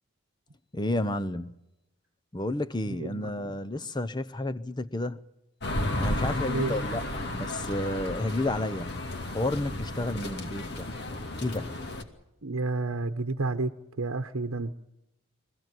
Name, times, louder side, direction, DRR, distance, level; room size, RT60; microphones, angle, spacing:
voice 1, 0.7-1.6 2.3-5.3 5.9-8.9 9.3-10.9 11.4-11.7, left 1 dB, 20° left, 0.8 m, -31 dB
voice 2, 3.0-3.5 6.5-6.7 12.4-13.7 14.0-14.7, right 3 dB, 75° right, 1.0 m, -30 dB
sound 1, 5.6-12.0, left 1 dB, 50° left, 2.4 m, -33 dB
24.0 x 16.0 x 9.3 m
head